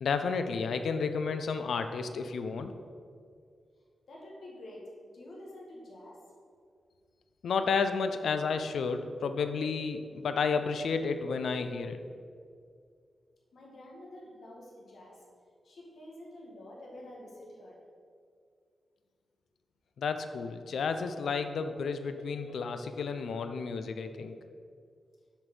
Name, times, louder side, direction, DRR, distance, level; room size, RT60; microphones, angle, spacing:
voice 1, 0.0-2.7 7.4-12.0 20.0-24.4, left 5 dB, 85° left, 8 dB, 0.5 m, -31 dB
voice 2, 4.1-6.2 13.5-15.2 15.6-17.8, left 1 dB, 65° left, -3 dB, 1.9 m, -48 dB
7.2 x 5.2 x 6.0 m, 2.2 s
wide cardioid pair, 170°, 0 cm